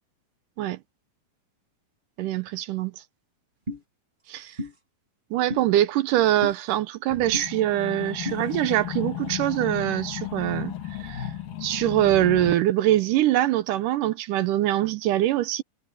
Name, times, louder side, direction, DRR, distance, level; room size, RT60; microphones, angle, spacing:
voice 1, 2.2-2.9 4.3-4.6 5.3-10.7 11.0-11.3 11.6-15.6, right 13 dB, 75° right, 2.2 m, -23 dB
sound 1, 3.7-3.8 4.6-4.7 5.5-5.6 6.4-6.6 7.3-7.5 8.2-8.4, left 1 dB, 15° right, 1.8 m, -32 dB
sound 2, 7.1-12.6, left 11 dB, 70° left, 4.0 m, -34 dB
omnidirectional pair, 4.2 m